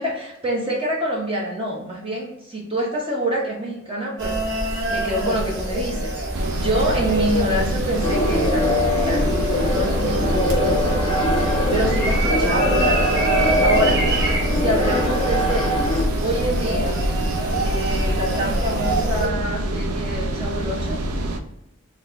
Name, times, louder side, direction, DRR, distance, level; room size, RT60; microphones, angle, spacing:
voice 1, 0.0-6.1 6.5-9.3 9.6-11.2 11.5-14.0 14.6-15.9 16.2-17.0 17.6-21.0, equal, 25° right, -3 dB, 0.7 m, -26 dB
sound 1, 4.2-19.3, right 1 dB, 50° right, 0.9 m, -24 dB
sound 2, 6.3-21.4, right 1 dB, 85° right, 0.5 m, -26 dB
sound 3, 8.0-16.0, left 2 dB, 25° left, 0.6 m, -24 dB
4.0 x 2.4 x 3.3 m, 0.86 s
head